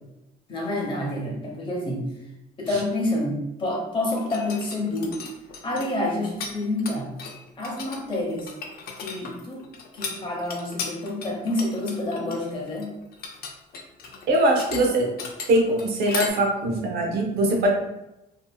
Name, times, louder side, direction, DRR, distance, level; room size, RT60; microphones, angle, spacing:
voice 1, 0.5-2.0 2.6-5.2 5.6-7.1 7.6-8.5 9.0-9.6 9.9-12.9, left 1 dB, 30° left, -2 dB, 0.9 m, -28 dB
sound 1, 4.1-6.5 6.8-16.3, left 5 dB, 65° left, 0.5 m, -36 dB
voice 2, 14.3-15.1 15.5-17.7, right 1 dB, 70° right, 1 dB, 0.7 m, -22 dB
2.7 x 2.7 x 2.3 m, 0.92 s
cardioid pair, 110°, 17 cm